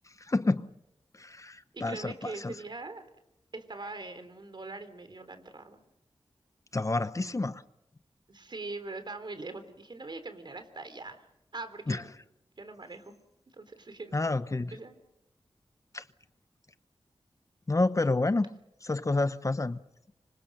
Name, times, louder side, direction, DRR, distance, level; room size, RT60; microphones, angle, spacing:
voice 1, 0.2-0.7 1.2-2.5 6.7-7.6 11.9-12.0 14.1-14.8 15.9-16.0 17.7-18.5 18.8-19.8, left 2 dB, 35° left, 0.9 m, -29 dB
voice 2, 1.7-3.1 3.5-5.8 8.3-12.1 12.6-13.1 13.5-14.3 14.7-15.0, right 3 dB, 50° right, 3.6 m, -42 dB
26.5 x 25.5 x 6.7 m
wide cardioid pair, 65°, 10 cm